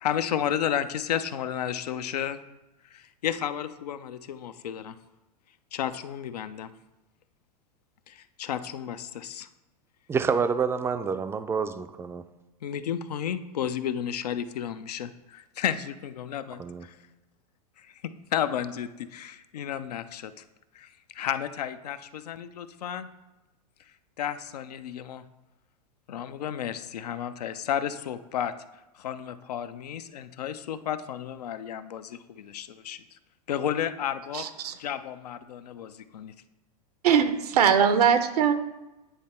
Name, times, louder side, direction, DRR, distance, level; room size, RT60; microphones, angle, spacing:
voice 1, 0.0-2.4 2.9-5.0 5.7-6.7 8.1-9.5 12.6-17.0 17.8-20.4 20.7-23.1 24.2-25.2 26.1-28.5 28.9-33.0 33.5-34.5 34.8-36.3, left 9 dB, 80° left, 0.5 m, -32 dB
voice 2, 10.1-12.2 16.6-16.9, right 5 dB, 10° right, 0.4 m, -28 dB
voice 3, 34.3-34.7 37.0-38.5, right 7 dB, 75° right, 0.7 m, -21 dB
9.6 x 3.3 x 4.3 m
hypercardioid pair, 105°, 20 cm